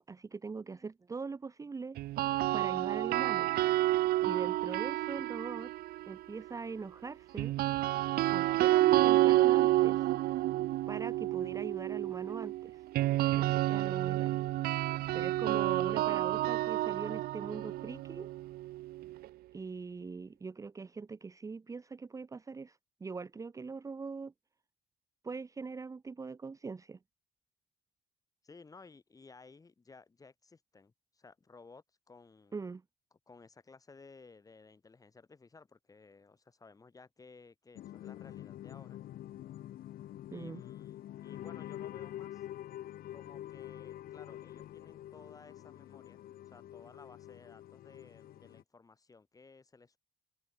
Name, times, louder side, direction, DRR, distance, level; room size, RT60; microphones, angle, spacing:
voice 1, 0.0-2.0 2.5-3.5 4.0-5.7 6.1-7.5 8.3-10.0 10.9-12.8 13.3-14.4 15.1-18.3 19.5-24.3 25.2-27.0 32.5-32.8 40.3-40.6, right 4 dB, 20° right, 1.0 m, -42 dB
sound 1, 2.0-6.1 7.4-19.3, right 16 dB, 70° right, 0.6 m, -29 dB
voice 2, 28.4-32.6 33.1-39.0 40.3-41.0 41.2-42.5 43.1-50.0, left 4 dB, 20° left, 5.4 m, -57 dB
sound 2, 37.8-48.6, left 13 dB, 65° left, 2.0 m, -46 dB
cardioid pair, 130°, 16 cm